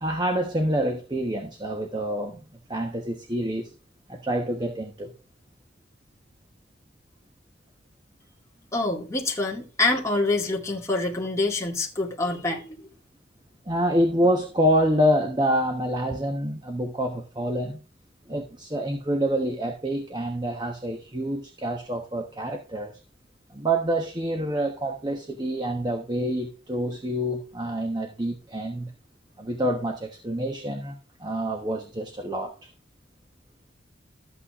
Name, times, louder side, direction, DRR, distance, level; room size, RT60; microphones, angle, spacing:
voice 1, 0.0-2.4 2.7-3.7 4.1-5.1 13.7-17.8 18.3-22.9 23.5-28.9 29.4-32.7, equal, 25° right, 1.1 m, -27 dB
voice 2, 8.7-12.9, left 2 dB, 15° left, 2.1 m, -26 dB
13.0 x 8.6 x 2.5 m
head